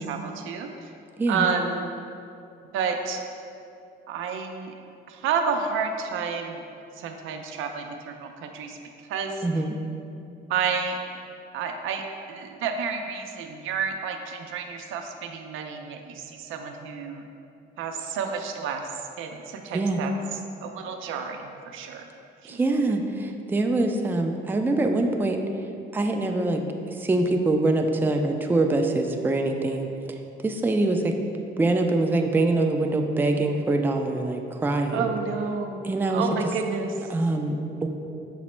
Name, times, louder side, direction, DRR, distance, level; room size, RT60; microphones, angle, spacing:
voice 1, 0.1-0.7 1.3-1.9 2.7-3.2 4.1-4.7 5.1-6.6 7.0-8.8 9.1-9.4 10.5-11.2 11.5-17.2 17.8-18.9 19.2-22.1 22.4-22.6 34.9-35.8 36.1-36.9, right 6 dB, 85° right, 4 dB, 0.4 m, -30 dB
voice 2, 9.4-9.8 19.7-20.0 22.5-25.4 25.9-26.6 27.0-29.9 30.4-31.2 31.6-35.1 35.8-36.2 37.1-37.9, right 2 dB, 10° right, 4 dB, 0.3 m, -24 dB
5.9 x 2.0 x 4.2 m, 2.6 s
cardioid pair, 90°, 20 cm